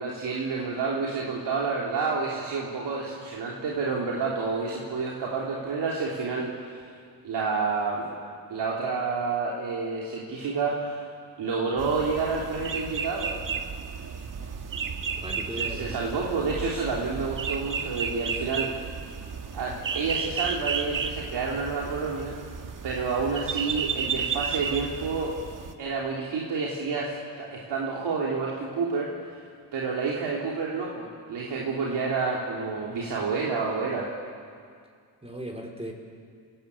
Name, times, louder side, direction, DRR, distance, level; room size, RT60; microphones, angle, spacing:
voice 1, 0.0-6.8 7.2-8.1 8.5-11.0 11.4-13.3 15.6-18.8 19.5-22.3 22.8-25.4 25.8-29.1 29.7-34.1, right 4 dB, 70° right, -4 dB, 3.6 m, -29 dB
sound 1, 11.8-25.7, right 6 dB, 50° right, 1.7 m, -33 dB
voice 2, 15.2-16.0 35.2-35.9, equal, 15° right, 0 dB, 4.2 m, -37 dB
30.0 x 17.5 x 8.8 m, 2.2 s
cardioid pair, 100°, 42 cm